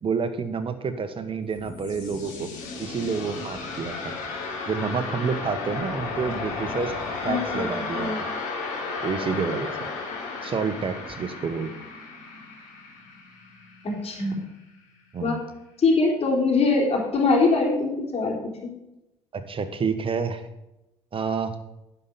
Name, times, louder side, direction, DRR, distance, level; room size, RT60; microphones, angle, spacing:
voice 1, 0.0-2.5 2.8-3.9 4.7-6.9 7.2-8.3 9.0-9.7 10.4-11.7 15.1-15.4 19.3-20.4 21.1-21.5, right 5 dB, 40° right, 9 dB, 1.5 m, -28 dB
sound 1, 1.3-14.2, left 4 dB, 70° left, 3.2 m, -34 dB
voice 2, 7.3-8.3 13.8-14.4 15.2-15.4 15.8-18.4, left 3 dB, 45° left, -2 dB, 3.9 m, -23 dB
11.0 x 5.9 x 7.0 m, 0.90 s
hypercardioid pair, 55°, 14 cm